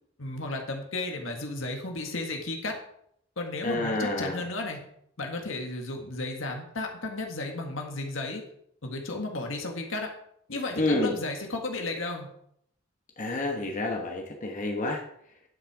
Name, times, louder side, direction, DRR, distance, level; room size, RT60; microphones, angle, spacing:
voice 1, 0.2-2.7 3.4-4.8 5.2-8.4 8.8-10.1 10.5-12.3, left 2 dB, 75° left, 2 dB, 1.9 m, -33 dB
voice 2, 3.6-4.4 10.7-11.2 13.2-15.0, left 2 dB, 40° left, 1 dB, 1.2 m, -28 dB
11.0 x 6.6 x 4.9 m, 0.71 s
head